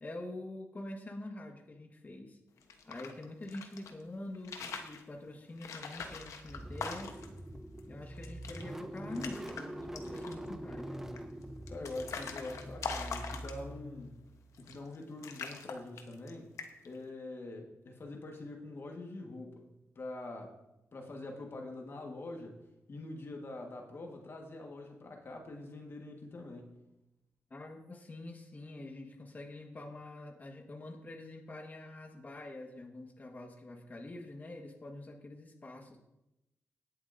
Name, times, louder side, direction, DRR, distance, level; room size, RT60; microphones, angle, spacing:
voice 1, 0.0-2.4 2.9-7.1 7.9-11.0 27.5-36.0, left 2 dB, 35° left, 1 dB, 1.5 m, -45 dB
sound 1, 2.6-3.9 4.3-5.0 5.6-7.4 7.8-7.9 8.1-8.6 9.0-9.6 10.0-10.5 11.2-13.9 14.5-15.0 15.2-16.3 16.6-17.0, left 5 dB, 80° left, 1.1 m, -42 dB
Car / Engine starting, 5.8-14.6, right 1 dB, 10° right, 0.7 m, -45 dB
voice 2, 11.7-14.3 14.6-16.5 16.8-19.7 19.9-20.6 20.9-22.6 22.9-26.8, left 2 dB, 50° left, 2 dB, 1.6 m, -44 dB
18.0 x 7.7 x 2.7 m, 0.91 s
cardioid pair, 75°, 5 cm